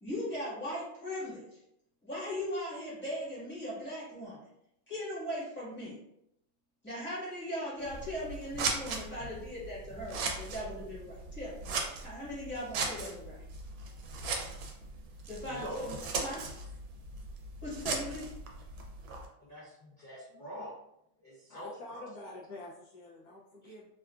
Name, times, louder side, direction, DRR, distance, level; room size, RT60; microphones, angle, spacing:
voice 1, 0.0-1.6 2.0-4.4 4.9-5.9 6.8-11.5 12.0-13.4 15.3-15.9 16.2-16.5 17.6-18.3, equal, 10° left, -8 dB, 0.9 m, -39 dB
Scissors, 7.8-19.3, right 4 dB, 85° right, 1.4 m, -38 dB
voice 2, 15.4-15.8 19.4-20.8 21.2-22.1 23.6-23.7, equal, 45° left, -10 dB, 0.6 m, -45 dB
voice 3, 21.5-23.9, left 2 dB, 75° left, -5 dB, 0.9 m, -47 dB
3.6 x 2.3 x 2.3 m, 0.78 s
omnidirectional pair, 2.2 m